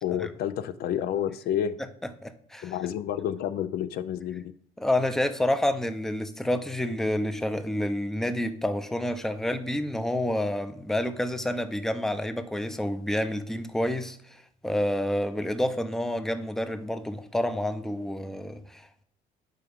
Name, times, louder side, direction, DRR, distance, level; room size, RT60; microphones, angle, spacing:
voice 1, 0.0-1.8 2.6-4.5, left 10 dB, 70° left, 0.4 m, -29 dB
voice 2, 2.2-2.7 4.8-19.0, left 1 dB, ahead, 0.5 m, -29 dB
11.0 x 4.5 x 3.5 m
cardioid pair, 110°, 17 cm